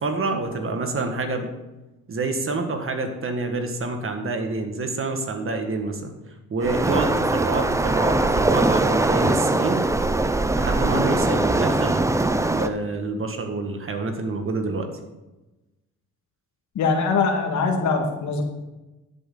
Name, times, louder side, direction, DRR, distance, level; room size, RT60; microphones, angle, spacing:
voice 1, 0.0-1.5 2.1-6.1 6.5-9.9 10.5-12.0 12.5-14.9, right 3 dB, 45° right, 5 dB, 1.8 m, -27 dB
Waves surf, 6.6-12.7, right 2 dB, 10° right, 0.6 m, -21 dB
voice 2, 16.8-18.4, left 4 dB, 70° left, 3 dB, 1.9 m, -22 dB
13.5 x 8.1 x 4.0 m, 1.0 s
cardioid pair, 90°, 30 cm